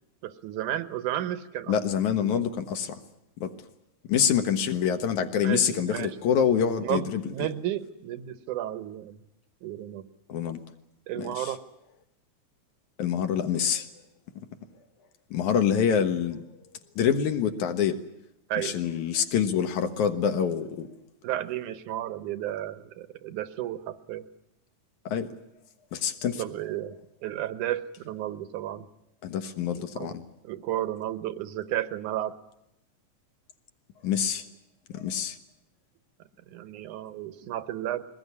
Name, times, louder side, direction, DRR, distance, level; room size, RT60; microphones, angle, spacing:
voice 1, 0.2-1.7 5.4-6.2 6.8-9.2 9.6-10.0 11.1-11.6 18.5-18.8 21.2-24.2 26.4-27.0 27.2-28.8 29.8-30.2 30.4-32.3 36.5-38.0, right 12 dB, 90° right, 12 dB, 2.6 m, -33 dB
voice 2, 1.7-3.0 3.4-3.5 4.1-7.3 10.3-10.6 11.2-11.5 13.0-13.9 15.3-16.5 17.0-18.0 18.6-20.9 25.1-25.3 25.9-26.4 29.2-30.3 34.0-34.4 34.9-35.4, left 8 dB, 80° left, 8 dB, 2.8 m, -26 dB
22.0 x 19.5 x 9.7 m, 0.83 s
omnidirectional pair, 3.4 m